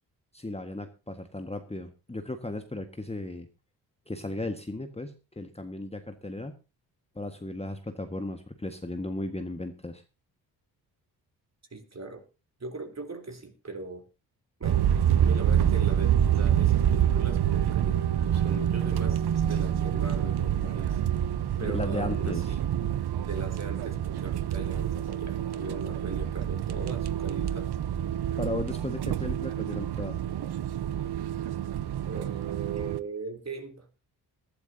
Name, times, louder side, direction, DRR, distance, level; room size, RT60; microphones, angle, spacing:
voice 1, 0.3-3.5 4.1-6.6 7.1-10.0 21.6-22.5 28.4-30.2, left 2 dB, 15° left, 7 dB, 1.6 m, -35 dB
voice 2, 11.7-12.2 12.6-14.0 14.6-14.8 15.2-19.2 19.5-21.0 21.6-22.6 23.2-27.7 31.0-31.1 32.1-33.9, right 3 dB, 35° right, 5 dB, 3.7 m, -39 dB
sound 1, 14.6-33.0, right 10 dB, 55° right, 1.0 m, -27 dB
21.0 x 12.0 x 2.8 m, 0.30 s
hypercardioid pair, 45°, 47 cm